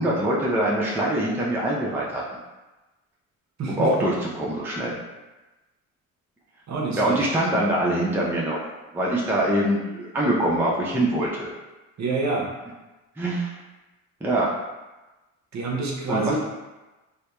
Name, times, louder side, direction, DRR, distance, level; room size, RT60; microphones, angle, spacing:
voice 1, 0.0-2.2 3.7-4.9 6.9-8.6 8.9-11.5 13.2-13.5 14.2-14.5 16.1-16.4, right 1 dB, 5° right, -5 dB, 0.5 m, -24 dB
voice 2, 3.6-3.9 6.7-7.3 12.0-12.5 15.5-16.4, right 3 dB, 45° right, -2 dB, 0.7 m, -27 dB
2.7 x 2.1 x 2.2 m, 1.1 s
hypercardioid pair, 60°, 40 cm